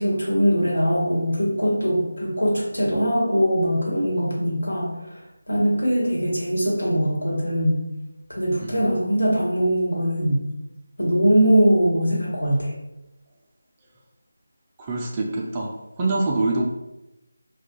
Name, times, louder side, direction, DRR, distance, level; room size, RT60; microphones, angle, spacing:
voice 1, 0.0-5.2 5.5-7.8 8.3-10.4 11.0-12.7, equal, 70° left, -4 dB, 1.2 m, -21 dB
voice 2, 14.8-16.6, right 2 dB, 20° right, -2 dB, 0.3 m, -25 dB
2.3 x 2.2 x 3.8 m, 0.95 s
figure-of-eight pair, 165°, 0 cm